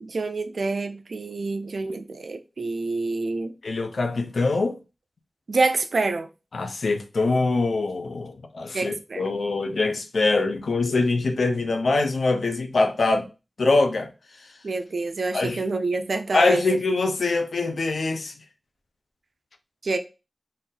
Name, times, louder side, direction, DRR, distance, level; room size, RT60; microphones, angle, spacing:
voice 1, 0.0-3.5 5.5-6.3 8.7-9.2 14.6-16.6 19.8-20.0, right 3 dB, 75° right, 0.6 m, -27 dB
voice 2, 3.6-4.8 6.5-13.3 13.6-14.1 15.3-15.6 16.3-18.3, left 3 dB, 75° left, 0.7 m, -23 dB
4.3 x 2.6 x 3.9 m
wide cardioid pair, 60°, 0 cm